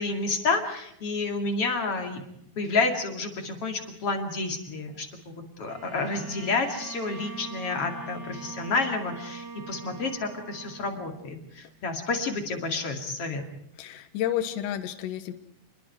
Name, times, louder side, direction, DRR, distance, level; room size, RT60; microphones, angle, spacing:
voice 1, 0.0-2.2 2.6-13.4, left 3 dB, 40° left, 4 dB, 2.5 m, -30 dB
Bowed string instrument, 5.7-11.4, right 4 dB, 40° right, 2.7 m, -42 dB
voice 2, 13.8-15.3, left 11 dB, 75° left, 7 dB, 3.4 m, -30 dB
28.5 x 21.5 x 4.7 m, 0.73 s
omnidirectional pair, 5.4 m